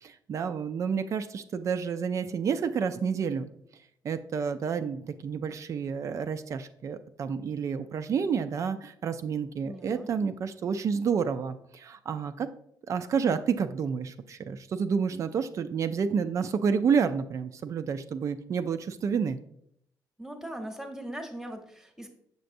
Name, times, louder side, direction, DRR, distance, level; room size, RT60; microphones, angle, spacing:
voice 1, 0.0-3.5 4.0-12.5 12.9-19.4, right 6 dB, 45° right, 10 dB, 0.4 m, -29 dB
voice 2, 9.6-10.1 20.2-22.1, right 1 dB, 5° right, 4 dB, 0.9 m, -40 dB
6.8 x 6.5 x 2.6 m, 0.71 s
cardioid pair, 135°, 7 cm